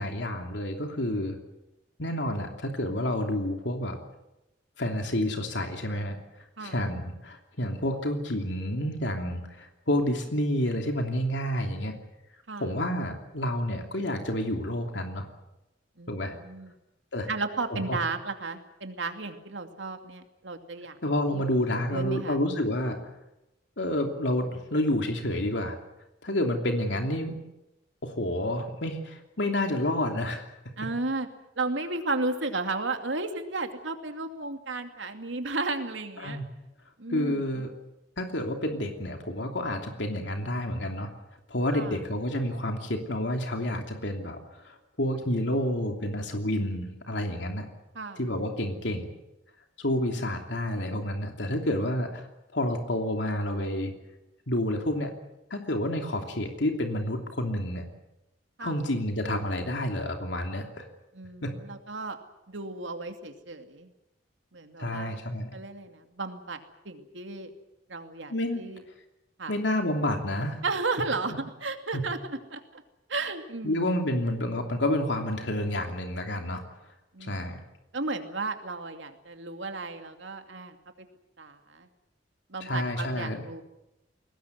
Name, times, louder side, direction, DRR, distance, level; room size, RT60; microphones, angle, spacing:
voice 1, 0.0-1.4 2.0-4.0 4.8-6.2 6.6-11.9 12.6-15.3 16.1-16.3 17.1-17.3 17.7-18.0 21.0-23.0 23.8-25.8 26.2-27.4 28.0-30.5 36.2-36.4 37.1-37.7 38.2-41.1 41.5-47.7 48.2-49.1 49.8-52.3 52.5-53.9 54.5-55.1 55.5-57.9 58.6-60.8 61.4-61.5 64.8-65.5 68.3-68.6 69.5-70.6 71.9-72.0 73.6-76.6 77.2-77.6 82.6-83.4, left 1 dB, 75° left, 4 dB, 2.9 m, -29 dB
voice 2, 16.0-16.7 17.3-21.0 21.3-22.4 30.8-31.3 31.6-36.4 37.0-37.4 41.7-42.0 47.9-48.2 58.6-58.8 61.1-62.2 62.5-63.9 64.5-65.2 65.5-66.6 66.8-67.5 67.9-68.8 69.4-69.6 70.6-72.2 72.5-72.8 73.1-73.9 77.1-77.5 77.9-81.1 81.4-81.9 82.5-83.6, right 3 dB, 90° right, 6 dB, 2.6 m, -34 dB
22.5 x 19.0 x 9.5 m, 0.92 s
head